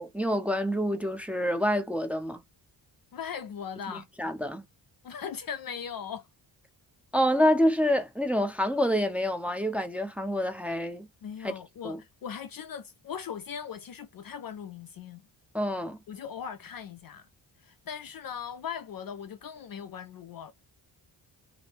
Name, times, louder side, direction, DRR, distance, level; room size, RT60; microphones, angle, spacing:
voice 1, 0.0-2.4 4.2-4.6 7.1-11.1 11.8-12.0 15.5-16.0, equal, 5° right, 0.6 m, -27 dB
voice 2, 3.1-4.0 5.0-6.3 11.2-15.2 16.1-17.3 17.6-20.5, left 7 dB, 50° left, 0.4 m, -39 dB
2.7 x 2.0 x 3.3 m
cardioid pair, 65°, 48 cm